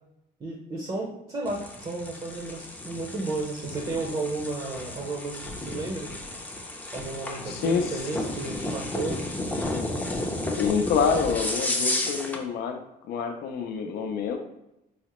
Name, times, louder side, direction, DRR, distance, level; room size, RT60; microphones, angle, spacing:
voice 1, 0.4-6.1 6.9-9.2, right 3 dB, 30° right, 0 dB, 0.7 m, -33 dB
sound 1, 1.5-12.4, left 2 dB, 10° left, 0.5 m, -33 dB
voice 2, 7.5-7.9 10.6-12.8 13.1-14.4, left 6 dB, 70° left, 5 dB, 0.5 m, -27 dB
4.7 x 2.0 x 2.9 m, 0.88 s
cardioid pair, 110°, 17 cm